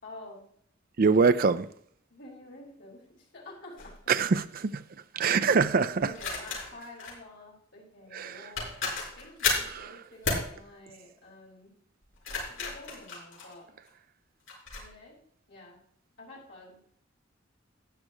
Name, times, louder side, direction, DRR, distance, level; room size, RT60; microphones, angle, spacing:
voice 1, 0.0-0.5 2.1-4.0 6.0-8.7 9.2-11.8 12.6-13.7 14.8-15.2 15.5-15.8 16.2-16.9, left 2 dB, 60° left, 4.9 m, -49 dB
voice 2, 1.0-1.7 4.1-4.8 5.1-6.1 8.1-8.5 9.7-10.0, right 5 dB, 45° right, 0.4 m, -24 dB
sound 1, 3.8-4.0 6.1-7.2 8.2-8.3 8.6-9.7 10.2-10.5 12.0-13.9 14.5-14.8, left 4 dB, 80° left, 4.8 m, -32 dB
12.5 x 9.6 x 3.0 m
head